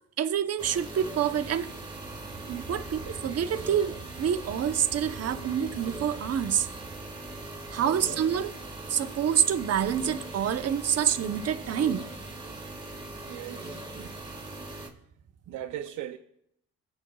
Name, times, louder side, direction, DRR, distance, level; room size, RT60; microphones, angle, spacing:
voice 1, 0.2-1.7 2.5-6.7 7.7-8.5 8.9-12.0 12.4-12.5 13.9-14.1, right 9 dB, 55° right, 0.9 m, -27 dB
sound 1, 0.6-14.9, right 2 dB, 15° right, 1.8 m, -41 dB
voice 2, 7.8-8.3 13.3-13.8 15.5-16.2, right 12 dB, 80° right, 0.6 m, -39 dB
23.0 x 8.7 x 2.4 m
cardioid pair, 90°, 30 cm